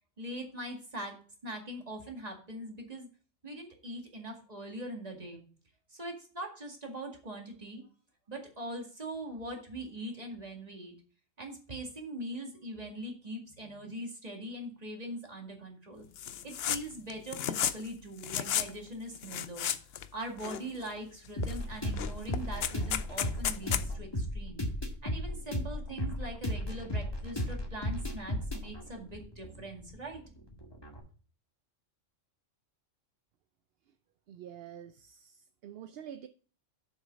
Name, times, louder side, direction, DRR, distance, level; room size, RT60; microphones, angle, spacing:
voice 1, 0.2-1.2 1.4-3.1 3.4-5.4 5.9-7.8 8.3-10.9 11.4-16.0 16.4-19.7 20.1-24.6 25.0-30.2, right 1 dB, 30° right, 2.1 m, -42 dB
sound 1, 16.2-16.8 17.1-17.9 18.2-18.7 19.1-20.1 20.4-21.0 21.4-21.6 21.8-23.8, left 9 dB, 60° left, 0.8 m, -33 dB
sound 2, 21.4-31.0, equal, 20° left, 1.8 m, -35 dB
voice 2, 34.3-36.3, right 9 dB, 65° right, 0.7 m, -47 dB
7.2 x 6.3 x 5.2 m
omnidirectional pair, 1.3 m